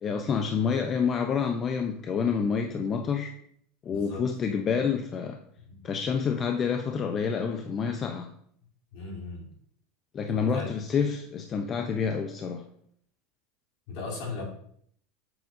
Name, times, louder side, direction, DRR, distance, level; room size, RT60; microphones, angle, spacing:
voice 1, 0.0-3.3 3.8-5.4 5.8-8.3 10.1-12.6, left 6 dB, 30° left, 5 dB, 0.5 m, -28 dB
voice 2, 3.9-4.2 5.7-5.8 8.9-9.5 10.3-10.8 13.9-14.4, left 3 dB, 65° left, -2 dB, 2.8 m, -37 dB
7.7 x 5.0 x 2.5 m, 0.65 s
supercardioid pair, 120°, 0 cm